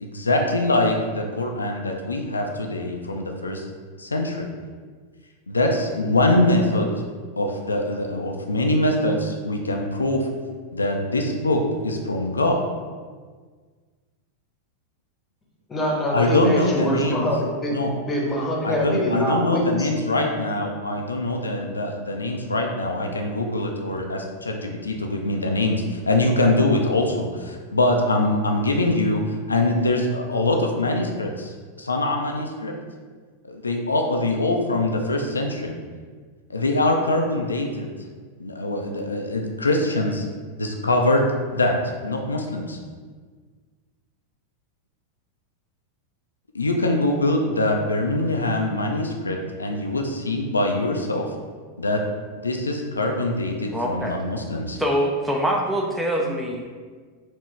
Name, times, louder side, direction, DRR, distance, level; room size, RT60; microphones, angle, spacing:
voice 1, 0.0-3.6 4.0-4.5 5.5-6.9 7.4-10.3 10.7-12.6 16.1-17.3 17.7-17.9 18.6-29.2 29.5-32.7 33.5-35.8 36.5-37.9 38.4-40.3 40.6-41.7 42.0-42.8 46.5-51.3 51.8-52.0 52.4-54.8, left 2 dB, 75° left, 2 dB, 0.4 m, -23 dB
voice 2, 15.7-19.9, equal, 20° left, -2 dB, 0.9 m, -24 dB
voice 3, 53.7-54.2 54.8-56.7, equal, 5° right, -1 dB, 0.4 m, -24 dB
4.4 x 2.9 x 3.2 m, 1.5 s
figure-of-eight pair, 90°, 0 cm